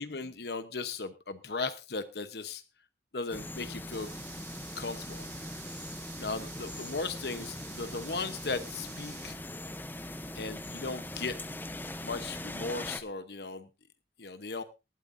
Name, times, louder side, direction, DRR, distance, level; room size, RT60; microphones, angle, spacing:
voice 1, 0.0-2.6 3.1-4.1 4.7-5.3 5.5-5.6 6.2-9.4 10.3-11.4 12.0-13.7 14.2-14.6, left 3 dB, 65° left, 10 dB, 1.0 m, -37 dB
sound 1, 3.3-13.0, left 1 dB, 10° left, 0.8 m, -41 dB
sound 2, 3.9-9.3, right 7 dB, 40° right, 3.1 m, -49 dB
19.5 x 12.5 x 2.6 m, 0.27 s
head